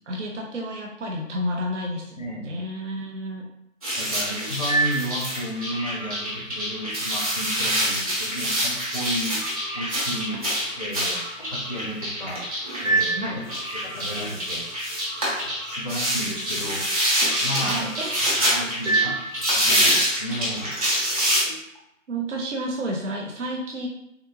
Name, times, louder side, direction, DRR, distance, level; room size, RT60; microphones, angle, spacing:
voice 1, 0.1-3.5 13.2-13.5 17.6-18.3 18.9-19.0 21.3-21.4 22.1-23.9, equal, 60° right, 0 dB, 0.7 m, -31 dB
voice 2, 2.2-2.7 4.0-9.4 9.7-10.4 10.8-12.5 12.8-13.4 13.7-14.7 15.6-16.8 17.4-17.9 18.4-19.2 19.5-20.8 21.4-21.5, equal, 35° left, -2 dB, 0.5 m, -33 dB
sound 1, 3.8-21.4, right 1 dB, 25° right, 0.9 m, -25 dB
3.6 x 2.4 x 3.0 m, 0.83 s
figure-of-eight pair, 155°, 40 cm